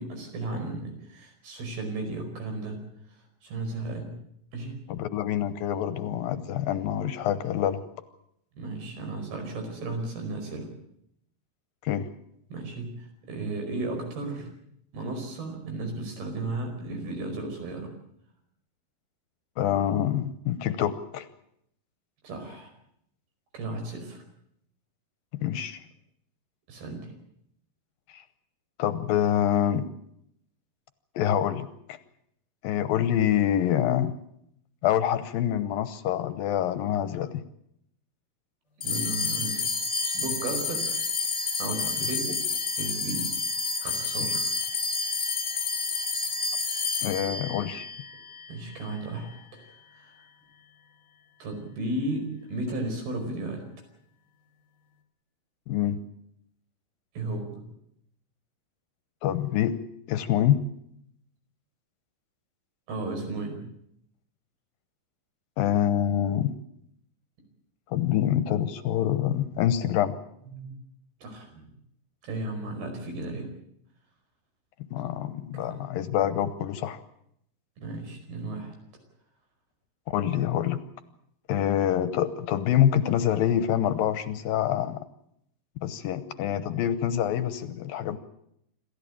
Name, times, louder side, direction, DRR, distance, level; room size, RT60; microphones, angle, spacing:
voice 1, 0.0-2.8 3.1-4.1 4.5-4.8 8.6-10.7 12.5-14.5 14.9-17.9 22.2-22.7 23.5-24.2 26.7-27.1 38.8-39.7 40.0-40.8 41.6-42.4 42.8-43.3 43.8-44.5 48.5-49.7 49.9-50.2 51.4-53.6 57.2-57.5 62.9-63.6 70.5-70.7 71.2-71.7 72.2-73.5 77.8-78.8, right 2 dB, 75° right, 5 dB, 6.9 m, -34 dB
voice 2, 4.9-7.8 11.8-12.1 19.6-21.3 25.3-25.8 28.1-28.2 28.8-29.9 31.2-32.0 32.6-34.1 34.8-37.4 42.0-42.1 47.0-47.9 55.7-56.0 59.2-59.8 60.1-60.6 65.6-66.5 67.9-70.2 74.9-77.0 80.1-80.8 81.5-85.0 85.8-88.2, left 10 dB, 75° left, 12 dB, 2.5 m, -26 dB
sound 1, 38.8-49.5, left 4 dB, 30° left, 1.5 m, -30 dB
27.0 x 13.5 x 8.7 m, 0.75 s
omnidirectional pair, 4.5 m